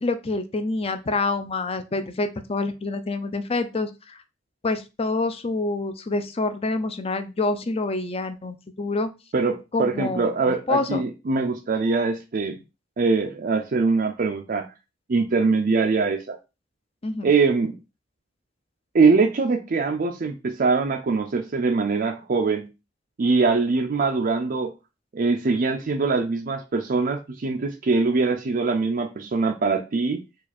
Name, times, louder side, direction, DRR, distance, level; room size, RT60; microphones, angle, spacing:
voice 1, 0.0-4.2 4.6-9.1 9.7-11.0 17.0-17.3, left 3 dB, 30° left, 8 dB, 0.6 m, -27 dB
voice 2, 9.3-12.6 13.0-14.7 15.1-16.4 17.2-17.8 18.9-22.7 23.2-24.7 25.1-30.2, right 4 dB, 50° right, 4 dB, 0.5 m, -22 dB
4.7 x 2.5 x 4.2 m, 0.28 s
head